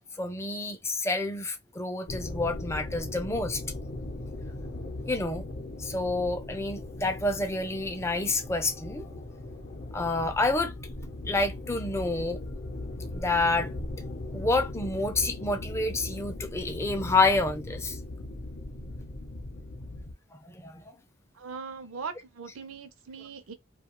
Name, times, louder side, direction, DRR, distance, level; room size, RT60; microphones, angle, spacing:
voice 1, 0.2-3.6 5.1-5.4 5.8-9.2 9.9-10.7 11.3-12.4 13.1-13.7 14.3-18.0 20.4-20.8, left 2 dB, 15° left, 0.4 m, -28 dB
sound 1, 2.1-20.1, left 2 dB, 50° left, 0.6 m, -38 dB
voice 2, 21.3-23.5, right 5 dB, 85° right, 0.6 m, -40 dB
2.6 x 2.3 x 2.9 m
head